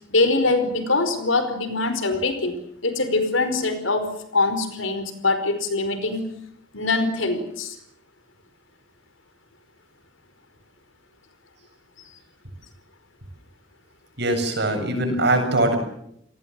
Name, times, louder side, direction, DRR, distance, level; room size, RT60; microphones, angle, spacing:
voice 1, 0.1-2.6 2.8-6.2 6.7-7.8, left 3 dB, 80° left, 9 dB, 5.0 m, -23 dB
voice 2, 14.2-15.8, right 1 dB, 60° right, 5 dB, 7.4 m, -21 dB
29.5 x 19.0 x 7.8 m, 0.74 s
head